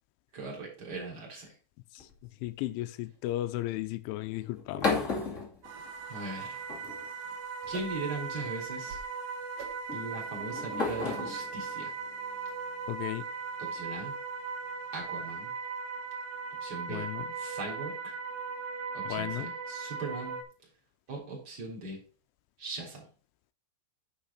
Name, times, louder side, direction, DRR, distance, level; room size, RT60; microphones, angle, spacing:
voice 1, 0.3-1.5 6.1-6.6 7.7-9.0 9.9-11.9 13.6-14.1 14.9-15.5 16.6-17.1 17.3-18.1 18.9-20.4 21.1-22.0 22.6-23.0, right 2 dB, 25° right, 3.2 m, -39 dB
sound 1, 2.0-2.5 4.4-6.3 6.7-7.3 8.4-8.7 9.9-13.2, left 4 dB, 65° left, 0.7 m, -35 dB
voice 2, 2.4-5.0 12.9-13.2 16.9-17.2 19.0-19.5, left 15 dB, 85° left, 3.0 m, -34 dB
sound 2, 5.1-5.3 5.7-5.9 6.2-6.5 6.9-8.2 8.6-9.2 9.6-9.9 10.3-10.4, right 4 dB, 65° right, 1.7 m, -50 dB
sound 3, 5.6-20.4, right 5 dB, 85° right, 4.0 m, -38 dB
10.0 x 5.8 x 4.1 m
omnidirectional pair, 5.8 m